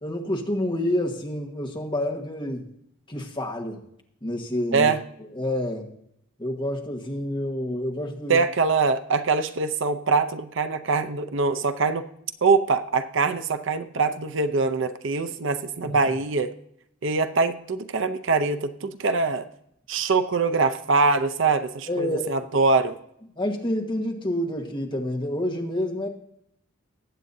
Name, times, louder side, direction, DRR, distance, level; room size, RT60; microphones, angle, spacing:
voice 1, 0.0-2.7 3.1-3.8 4.2-4.9 5.2-5.9 6.4-8.4 15.8-15.9 21.9-22.3 23.3-26.1, left 1 dB, 20° left, 1 dB, 1.4 m, -28 dB
voice 2, 8.3-12.0 12.4-16.5 17.0-19.5 19.9-23.0, right 4 dB, 60° right, 9 dB, 0.6 m, -23 dB
20.0 x 8.3 x 2.7 m, 0.74 s
head